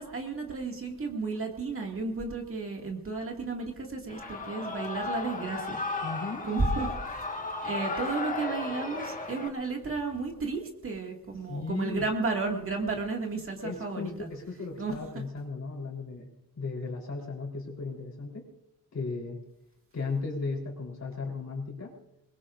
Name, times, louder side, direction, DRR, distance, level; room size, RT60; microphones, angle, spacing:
voice 1, 0.0-5.8 6.4-7.3 7.6-14.3 14.8-15.0, right 3 dB, 35° right, 1 dB, 2.1 m, -33 dB
Shout / Cheering, 4.1-9.5, left 3 dB, 20° left, 1.6 m, -35 dB
voice 2, 6.0-6.5 11.5-12.0 13.6-16.3 16.6-18.5 18.9-19.4 19.9-21.9, left 4 dB, 50° left, 0 dB, 3.8 m, -36 dB
23.0 x 21.5 x 2.6 m, 0.86 s
wide cardioid pair, 160°, 36 cm